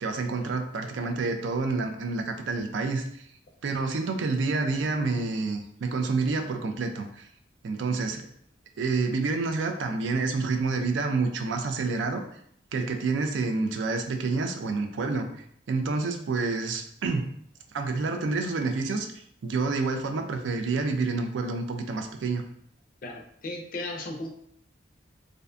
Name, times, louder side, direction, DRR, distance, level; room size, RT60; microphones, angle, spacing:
voice 1, 0.0-3.0 3.6-7.2 7.6-8.3 8.8-12.2 12.7-17.3 17.7-22.4, right 3 dB, 85° right, 6 dB, 0.4 m, -28 dB
voice 2, 23.0-24.3, left 2 dB, 50° left, 3 dB, 0.4 m, -35 dB
2.5 x 2.1 x 2.5 m, 0.67 s
head